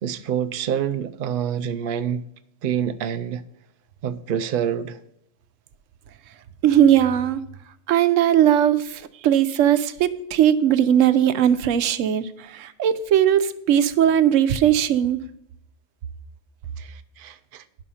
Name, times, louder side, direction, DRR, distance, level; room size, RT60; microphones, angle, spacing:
voice 1, 0.0-2.2 2.6-3.4 4.0-5.0 16.8-17.6, right 8 dB, 60° right, 0.6 m, -27 dB
voice 2, 6.6-7.4 7.9-15.2, right 10 dB, 80° right, 1.0 m, -19 dB
10.0 x 6.4 x 5.6 m
omnidirectional pair, 1.3 m